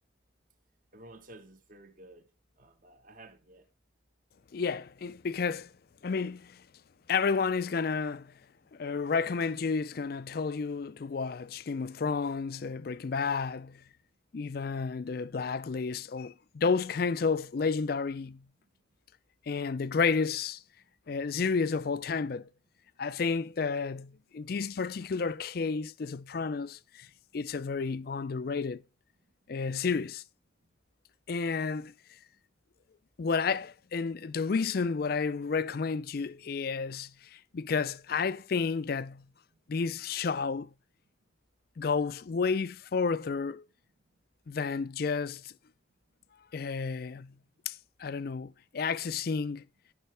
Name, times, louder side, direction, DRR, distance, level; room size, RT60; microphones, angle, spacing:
voice 1, 0.9-2.3 2.6-3.7, right 2 dB, 45° right, 1.2 m, -52 dB
voice 2, 4.5-5.7 6.0-6.6 7.1-8.3 8.7-13.8 14.3-18.4 19.5-20.6 21.1-22.5 23.0-27.1 27.3-28.8 29.5-30.2 31.3-31.9 33.2-39.3 39.7-40.7 41.8-43.7 44.5-45.5 46.5-47.3 47.7-49.6, left 5 dB, 50° left, 0.4 m, -31 dB
14.5 x 5.7 x 3.3 m
head